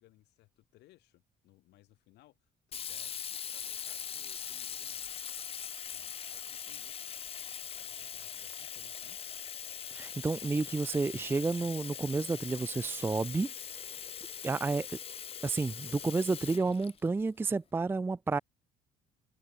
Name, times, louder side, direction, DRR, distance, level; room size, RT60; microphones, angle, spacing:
voice 1, 0.0-5.1 5.9-7.1 7.4-9.2, left 17 dB, 80° left, 5.3 m, -63 dB
Sink (filling or washing), 2.7-17.5, left 8 dB, 35° left, 0.6 m, -42 dB
voice 2, 10.0-13.5 14.4-14.9 15.4-18.4, right 3 dB, 15° right, 0.5 m, -31 dB
cardioid pair, 110°, 17 cm